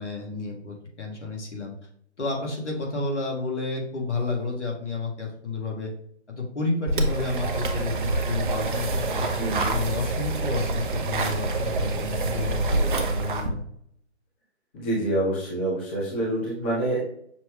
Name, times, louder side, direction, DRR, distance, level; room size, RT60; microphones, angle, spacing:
voice 1, 0.0-1.7 2.2-5.9 6.3-9.3 9.7-13.6, left 3 dB, 80° left, 0 dB, 1.6 m, -31 dB
sound 1, 6.9-13.5, right 2 dB, 45° right, 0.7 m, -26 dB
voice 2, 9.4-9.8 14.7-17.0, right 1 dB, 10° left, -5 dB, 0.5 m, -27 dB
6.0 x 2.2 x 3.4 m, 0.66 s
figure-of-eight pair, 140°, 35 cm